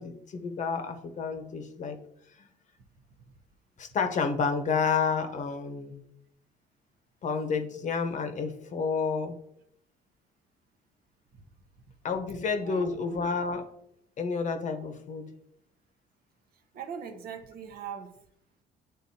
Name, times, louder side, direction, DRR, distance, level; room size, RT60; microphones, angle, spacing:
voice 1, 0.0-2.0 2.4-2.5 3.8-6.0 7.2-9.4 12.0-13.6 14.2-15.3, left 5 dB, 45° left, 6 dB, 0.8 m, -30 dB
voice 2, 12.6-13.3 16.7-18.1, right 7 dB, 60° right, 6 dB, 0.8 m, -40 dB
9.5 x 3.8 x 2.8 m, 0.78 s
cardioid pair, 110°, 17 cm